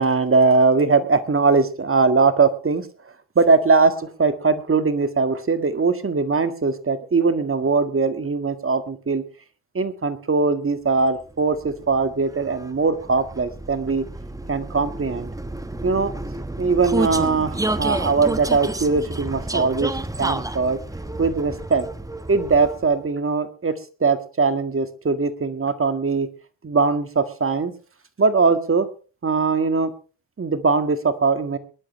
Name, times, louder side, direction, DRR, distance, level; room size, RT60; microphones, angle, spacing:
voice 1, 0.0-2.9 3.4-9.2 9.7-14.1 14.5-15.3 15.8-16.1 16.6-19.9 20.2-20.8 21.2-21.9 22.3-26.3 26.6-27.7 28.2-28.9 29.2-29.9 30.4-31.6, right 4 dB, 30° right, 10 dB, 1.9 m, -20 dB
Vehicle, 11.2-23.1, right 2 dB, 5° right, 1.1 m, -30 dB
22.5 x 11.5 x 3.3 m, 0.37 s
cardioid pair, 95°, 46 cm